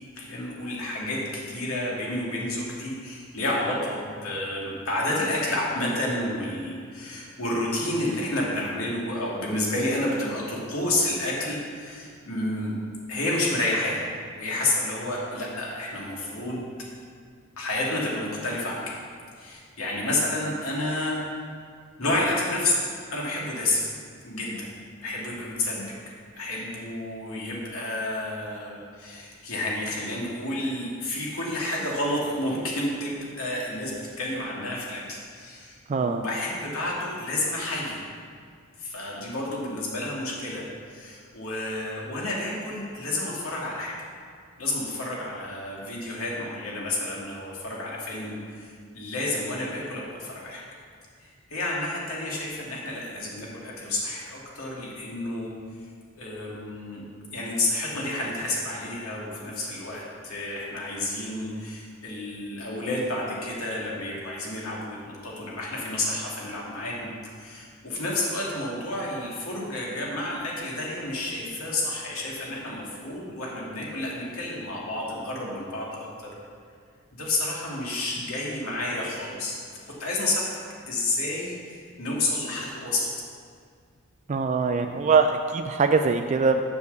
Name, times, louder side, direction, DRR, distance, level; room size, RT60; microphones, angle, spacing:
voice 1, 0.2-12.8 13.1-14.1 14.4-16.7 17.6-18.9 19.4-21.2 22.0-23.8 24.2-24.7 25.0-38.0 38.8-43.9 44.6-50.6 51.2-55.5 56.1-57.0 57.3-76.1 77.1-79.6 80.0-83.1, left 1 dB, 90° left, -4 dB, 2.4 m, -30 dB
voice 2, 35.9-36.2 84.3-86.6, right 4 dB, 35° right, 6 dB, 0.3 m, -22 dB
7.0 x 6.5 x 7.0 m, 2.1 s
head